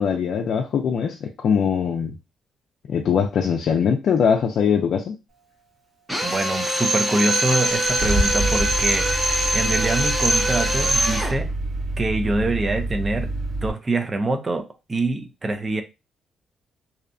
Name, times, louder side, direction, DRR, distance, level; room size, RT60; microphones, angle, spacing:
voice 1, 0.0-2.2 2.9-5.1, left 7 dB, 65° left, 0.4 m, -21 dB
Drill, 6.1-11.4, right 1 dB, 5° right, 0.7 m, -23 dB
voice 2, 6.2-11.5 12.0-13.3 13.6-15.8, right 2 dB, 30° right, 0.5 m, -25 dB
Car / Engine starting, 6.8-6.9 7.5-13.7, right 1 dB, 50° right, 1.4 m, -27 dB
2.7 x 2.1 x 2.5 m
cardioid pair, 90°, 0 cm